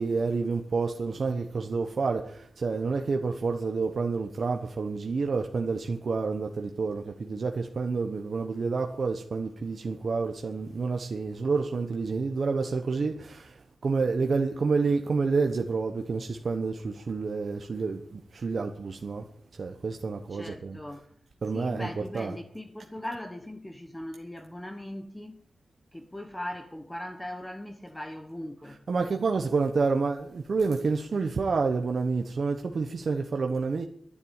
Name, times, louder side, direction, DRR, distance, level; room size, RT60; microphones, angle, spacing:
voice 1, 0.0-13.5 13.8-19.2 19.6-20.8 21.4-22.3 28.9-33.9, right 4 dB, 50° right, 1.1 m, -29 dB
voice 2, 20.3-21.1 21.5-25.4 25.9-28.8, left 1 dB, 10° left, 1.0 m, -39 dB
11.5 x 10.0 x 8.9 m
wide cardioid pair, 145°, 0 cm